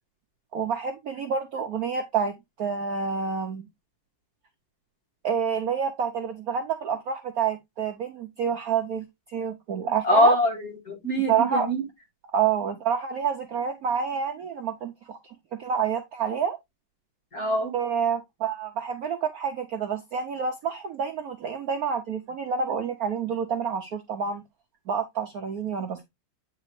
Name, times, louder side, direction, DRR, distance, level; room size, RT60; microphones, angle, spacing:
voice 1, 0.5-3.6 5.2-10.3 11.3-11.7 12.3-15.3 15.6-16.6 17.7-24.4 24.9-26.0, right 6 dB, 65° right, 0.9 m, -28 dB
voice 2, 10.0-11.8 17.3-17.7, equal, 45° left, 2.4 m, -23 dB
8.5 x 4.1 x 3.1 m
omnidirectional pair, 2.2 m